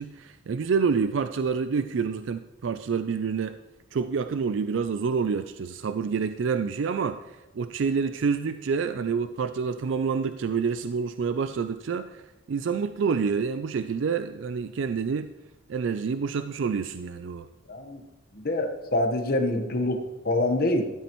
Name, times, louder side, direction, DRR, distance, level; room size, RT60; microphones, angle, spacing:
voice 1, 0.0-3.6 3.9-12.2 12.5-15.3 15.7-17.5, right 5 dB, 75° right, 10 dB, 0.4 m, -28 dB
voice 2, 17.7-18.0 18.3-20.0 20.2-20.9, left 1 dB, 50° left, 4 dB, 1.2 m, -25 dB
13.5 x 12.5 x 3.1 m, 1.1 s
head